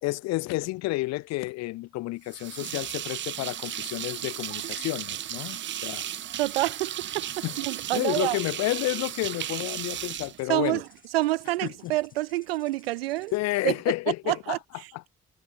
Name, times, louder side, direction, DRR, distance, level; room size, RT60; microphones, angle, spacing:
voice 1, 0.0-6.0 7.4-7.5 7.9-10.8 13.3-14.6, left 19 dB, 65° left, 0.8 m, -30 dB
sound 1, 2.3-11.1, right 11 dB, 40° right, 0.6 m, -35 dB
sound 2, 3.7-13.4, left 4 dB, 30° left, 6.0 m, -61 dB
voice 2, 6.4-8.4 10.4-13.3 13.6-13.8 14.2-15.1, right 18 dB, 80° right, 0.6 m, -28 dB
figure-of-eight pair, 45°, 29 cm